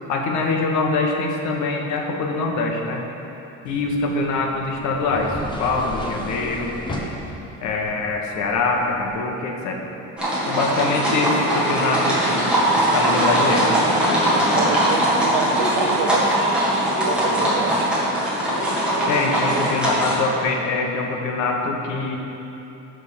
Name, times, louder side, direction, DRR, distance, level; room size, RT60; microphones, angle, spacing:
voice 1, 0.1-3.0 3.6-6.8 7.6-9.8 10.5-12.6 12.9-13.7 19.1-22.2, left 3 dB, 70° left, 1 dB, 1.3 m, -24 dB
sound 1, 3.7-9.2, left 1 dB, 15° left, 0.8 m, -35 dB
sound 2, 10.2-20.1, right 1 dB, 5° right, 1.7 m, -20 dB
voice 2, 14.3-17.9, right 6 dB, 80° right, 5 dB, 0.9 m, -28 dB
10.5 x 3.8 x 6.7 m, 3.0 s
cardioid pair, 160°, 30 cm